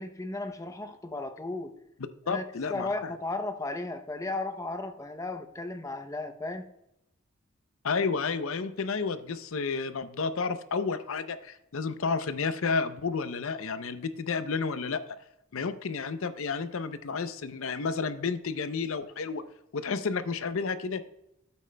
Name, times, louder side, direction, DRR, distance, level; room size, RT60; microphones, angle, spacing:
voice 1, 0.0-1.7 2.3-6.7, left 2 dB, 15° left, 8 dB, 0.6 m, -35 dB
voice 2, 2.3-3.1 7.8-15.0 15.5-19.4 19.7-21.1, left 4 dB, 65° left, 12 dB, 0.6 m, -31 dB
12.5 x 8.3 x 2.2 m, 0.83 s
head